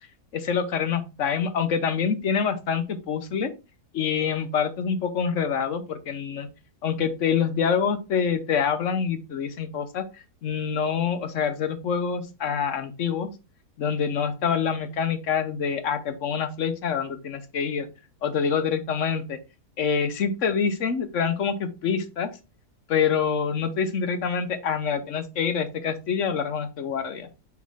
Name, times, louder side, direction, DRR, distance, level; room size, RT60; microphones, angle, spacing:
voice 1, 0.3-3.5 3.9-6.5 6.8-13.3 13.8-17.9 18.2-19.4 19.8-22.3 22.9-27.3, left 6 dB, 55° left, 9 dB, 1.1 m, -26 dB
6.1 x 4.4 x 3.6 m, 0.28 s
omnidirectional pair, 1.7 m